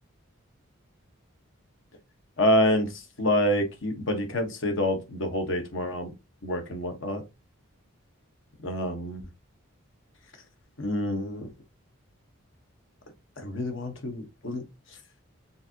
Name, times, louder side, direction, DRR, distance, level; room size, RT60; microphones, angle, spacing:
voice 1, 2.4-6.1 6.4-7.2 8.6-9.2 10.8-11.5 13.4-14.6, equal, 60° left, 1.2 m, -27 dB
6.9 x 2.7 x 2.8 m
head